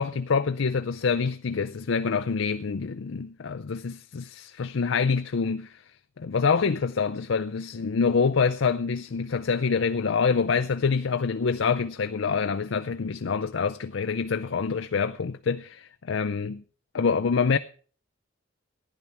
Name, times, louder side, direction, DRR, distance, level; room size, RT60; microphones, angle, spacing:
voice 1, 0.0-5.7 6.2-16.6 16.9-17.6, left 5 dB, 80° left, 0.5 m, -26 dB
14.5 x 10.5 x 5.8 m
head